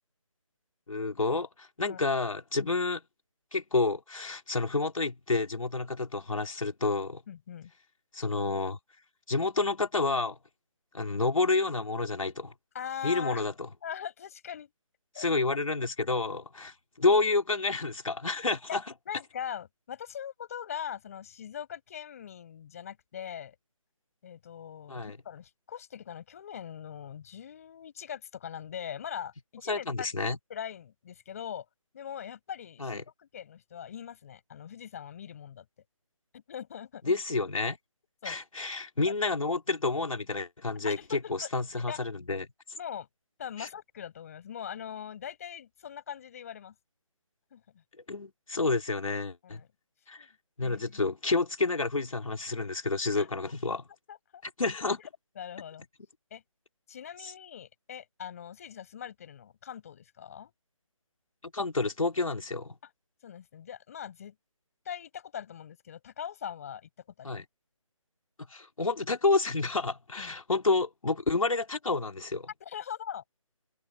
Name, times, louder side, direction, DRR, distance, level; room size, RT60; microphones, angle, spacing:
voice 1, 0.9-3.0 3.5-7.2 8.1-8.8 9.3-10.4 10.9-12.5 13.0-13.7 15.2-18.8 24.9-25.2 29.7-30.4 32.8-33.0 37.0-37.8 38.2-42.5 43.6-43.7 48.1-49.6 50.1-50.3 50.6-53.8 54.6-55.0 57.2-57.3 61.4-62.8 67.2-67.4 68.5-72.5, left 3 dB, 80° left, 3.8 m, -29 dB
voice 2, 7.3-7.7 12.7-13.4 13.8-14.7 15.1-15.3 18.7-18.8 19.1-23.6 24.2-30.1 30.5-31.7 31.9-35.6 36.3-37.1 38.2-38.4 40.8-41.5 41.9-42.0 42.8-43.1 43.4-46.7 47.5-47.8 49.4-49.7 50.2-50.3 50.6-51.1 53.2-53.4 53.7-53.8 54.1-54.4 55.4-55.9 56.3-56.4 56.9-60.5 63.2-64.3 64.8-66.9 67.2-67.4 70.2-70.3 72.6-73.2, left 9 dB, 25° left, 5.7 m, -41 dB
open air
figure-of-eight pair, 170°, 17 cm